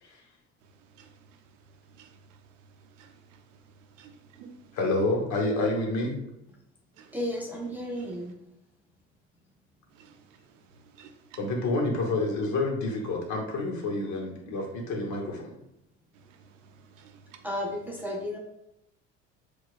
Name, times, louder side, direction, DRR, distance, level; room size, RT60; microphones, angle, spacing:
voice 1, 0.6-4.8 7.0-7.2 8.0-8.2 9.9-11.4 16.1-17.5, right 6 dB, 80° right, 0.5 m, -54 dB
voice 2, 4.7-6.1 11.4-15.5, left 2 dB, 50° left, 1.1 m, -28 dB
voice 3, 7.1-8.3 17.4-18.4, left 1 dB, 5° right, 0.6 m, -33 dB
4.4 x 2.4 x 2.4 m
hypercardioid pair, 65°, 36 cm